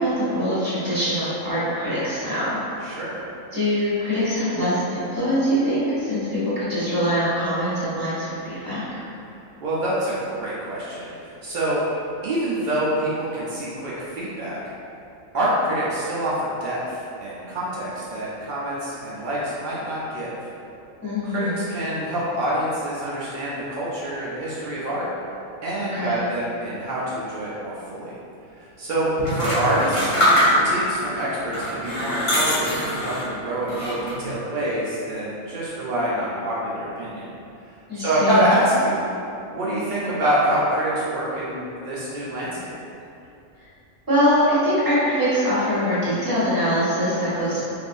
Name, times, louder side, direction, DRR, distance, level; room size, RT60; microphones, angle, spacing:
voice 1, 0.0-2.6 3.5-8.8 21.0-21.6 25.8-26.2 37.9-38.5 44.1-47.6, equal, 20° right, -11 dB, 0.8 m, -23 dB
voice 2, 2.8-3.2 9.6-11.8 12.2-14.6 15.3-20.4 21.3-25.1 25.6-28.1 28.6-30.1 30.4-37.3 37.9-39.0 39.5-42.7, right 1 dB, 85° right, -8 dB, 0.4 m, -26 dB
sound 1, 29.2-30.9 31.5-33.3 33.7-34.3, equal, 30° left, 0.6 m, -23 dB
3.3 x 2.5 x 2.5 m, 2.7 s
omnidirectional pair, 1.4 m